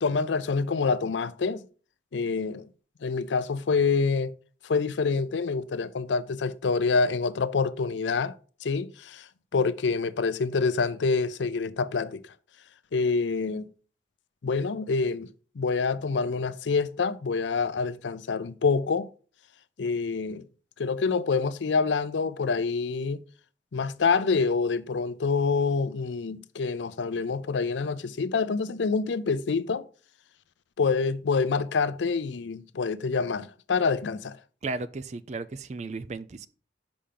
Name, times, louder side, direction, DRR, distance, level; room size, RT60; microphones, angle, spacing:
voice 1, 0.0-1.6 2.1-2.6 3.0-4.3 4.6-8.3 8.6-9.2 9.5-12.2 12.9-13.7 14.4-15.3 15.6-19.1 19.8-20.4 20.8-23.2 23.7-29.8 30.8-34.4, left 4 dB, 85° left, 0.5 m, -26 dB
voice 2, 34.6-36.5, right 3 dB, 40° right, 0.4 m, -35 dB
5.7 x 5.2 x 5.1 m
head